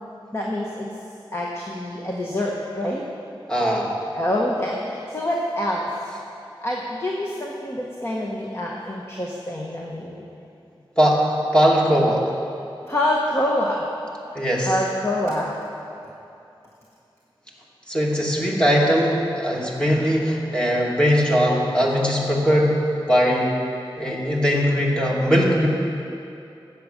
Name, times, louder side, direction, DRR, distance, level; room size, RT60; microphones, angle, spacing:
voice 1, 0.3-0.9 1.3-3.0 4.1-5.9 6.6-10.2 12.9-13.9 14.6-15.6, left 1 dB, 30° left, -2 dB, 1.4 m, -26 dB
voice 2, 3.5-3.9 11.0-11.3 11.5-12.3 14.3-14.7 17.9-22.8 23.1-23.6 24.0-25.7, equal, 10° left, -3 dB, 2.3 m, -20 dB
15.0 x 8.7 x 6.7 m, 2.7 s
wide cardioid pair, 90°, 9 cm